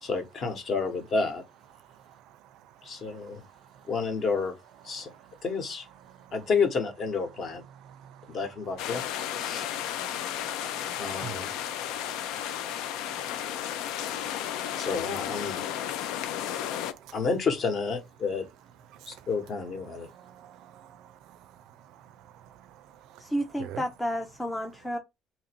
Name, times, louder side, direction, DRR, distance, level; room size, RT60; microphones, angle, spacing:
voice 1, 0.0-1.4 2.8-3.4 3.9-4.6 4.8-5.1 5.4-5.9 6.3-7.6 8.3-9.0 9.4-9.7 11.0-11.5 14.8-15.6 17.1-18.4 19.1-20.1, left 4 dB, 40° left, 1.1 m, -30 dB
sound 1, 8.8-16.9, left 10 dB, 90° left, 0.4 m, -33 dB
voice 2, 9.0-10.9 11.2-11.5 14.2-15.0 15.7-15.8 16.5-17.0 20.2-20.9 23.6-23.8, right 10 dB, 75° right, 0.4 m, -46 dB
voice 3, 23.2-25.0, equal, 10° left, 0.5 m, -31 dB
2.9 x 2.6 x 4.3 m
cardioid pair, 150°, 0 cm